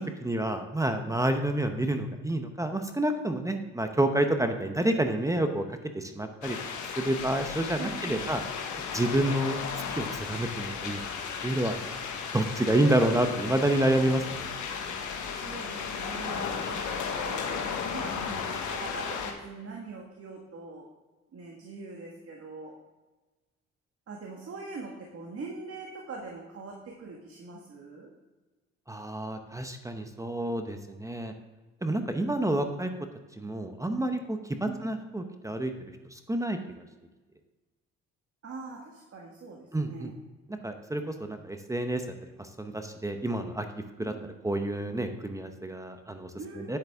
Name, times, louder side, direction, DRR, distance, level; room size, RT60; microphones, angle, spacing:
voice 1, 0.2-5.6 5.9-6.6 7.0-8.4 8.9-9.6 10.0-11.0 11.4-11.7 12.3-14.5 28.9-31.3 31.8-32.9 33.4-35.7 36.1-36.6 39.7-40.1 40.6-42.0 42.6-43.6 44.0-44.1 44.4-46.3 46.6-46.8, right 1 dB, 10° right, 6 dB, 0.8 m, -28 dB
sound 1, 6.4-19.3, left 6 dB, 75° left, 1.4 m, -35 dB
voice 2, 7.8-8.4 15.3-20.9 21.3-22.7 24.1-28.1 34.6-34.9 38.4-40.1 44.0-44.3 46.4-46.8, right 4 dB, 50° right, -1 dB, 1.7 m, -42 dB
9.6 x 8.1 x 3.6 m, 1.2 s
cardioid pair, 90°, 30 cm